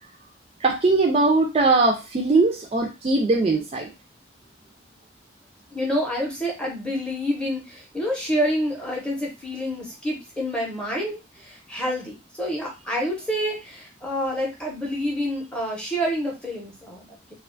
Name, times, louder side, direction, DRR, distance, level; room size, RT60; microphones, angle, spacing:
voice 1, 0.6-3.9, right 3 dB, 30° right, 1 dB, 0.3 m, -20 dB
voice 2, 5.7-17.2, equal, 5° left, -1 dB, 0.6 m, -28 dB
2.4 x 2.2 x 2.5 m, 0.27 s
head